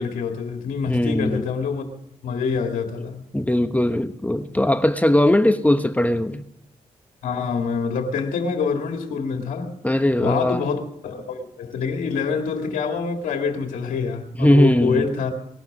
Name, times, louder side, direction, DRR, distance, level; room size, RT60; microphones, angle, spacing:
voice 1, 0.0-1.8 2.2-3.3 7.2-9.7 10.2-15.3, left 5 dB, 80° left, 3 dB, 2.1 m, -26 dB
voice 2, 0.8-1.4 3.3-6.4 9.8-10.6 14.4-15.2, left 1 dB, 10° left, 8 dB, 1.1 m, -19 dB
19.5 x 12.0 x 6.1 m, 0.84 s
supercardioid pair, 45°, 13 cm